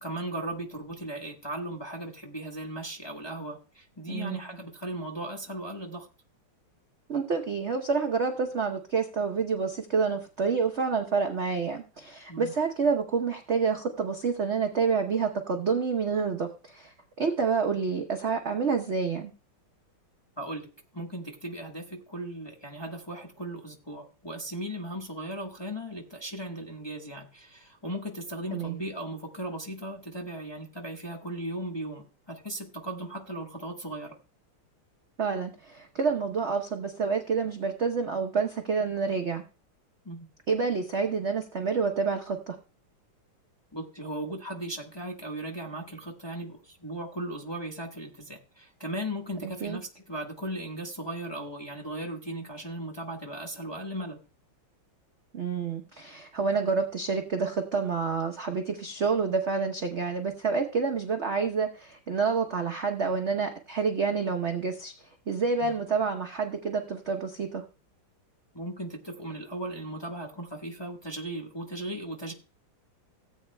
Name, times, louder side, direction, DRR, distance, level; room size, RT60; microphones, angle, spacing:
voice 1, 0.0-6.1 12.3-12.5 20.4-34.2 40.0-40.3 43.7-54.2 65.6-65.7 68.5-72.3, right 1 dB, 15° left, 0 dB, 1.0 m, -37 dB
voice 2, 7.1-19.3 28.5-28.8 35.2-39.4 40.5-42.6 49.4-49.8 55.3-64.9 65.3-67.6, right 5 dB, 55° right, 4 dB, 0.7 m, -28 dB
17.5 x 8.4 x 2.2 m, 0.33 s
omnidirectional pair, 2.3 m